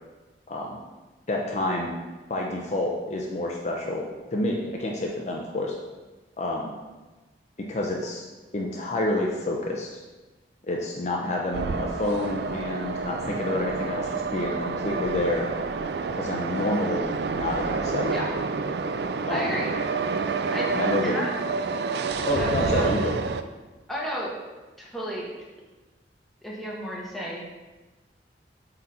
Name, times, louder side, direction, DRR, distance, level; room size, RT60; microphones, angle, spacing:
voice 1, 0.5-0.8 1.3-2.0 2.3-5.7 6.4-6.7 7.6-8.2 8.5-9.9 10.6-15.5 16.1-18.2 19.3-19.5 20.7-21.1 22.2-23.1, left 1 dB, 40° left, -1 dB, 0.7 m, -28 dB
sound 1, 11.5-23.4, right 4 dB, 65° right, 0.4 m, -29 dB
voice 2, 19.3-19.7 20.5-20.7 21.0-21.3 22.2-22.9 23.9-24.4 24.8-25.3 26.4-27.5, equal, ahead, -4 dB, 1.3 m, -32 dB
8.0 x 4.0 x 4.4 m, 1.2 s
head